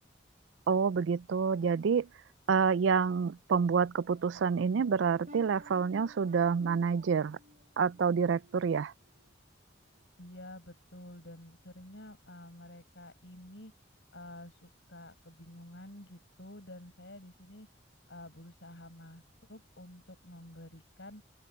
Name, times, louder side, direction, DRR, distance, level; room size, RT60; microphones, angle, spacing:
voice 1, 0.7-2.1 2.5-7.4 7.8-8.9, right 6 dB, 75° right, 0.4 m, -28 dB
sound 1, 3.7-9.3 9.8-10.1 10.6-10.8, left 1 dB, 45° right, 2.9 m, -57 dB
voice 2, 10.2-13.7 14.1-17.7 18.1-19.2 19.5-21.2, left 1 dB, 70° left, 6.7 m, -50 dB
open air
head